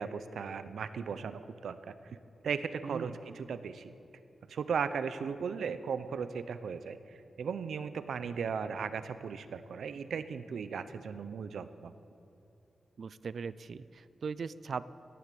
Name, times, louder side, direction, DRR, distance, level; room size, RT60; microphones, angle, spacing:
voice 1, 0.0-2.2 2.4-3.9 4.5-7.0 7.4-11.9, right 6 dB, 90° right, 12 dB, 0.7 m, -37 dB
voice 2, 2.8-3.2 13.0-14.9, right 5 dB, 60° right, 17 dB, 0.4 m, -39 dB
18.0 x 11.5 x 6.9 m, 2.7 s
wide cardioid pair, 130°, 0 cm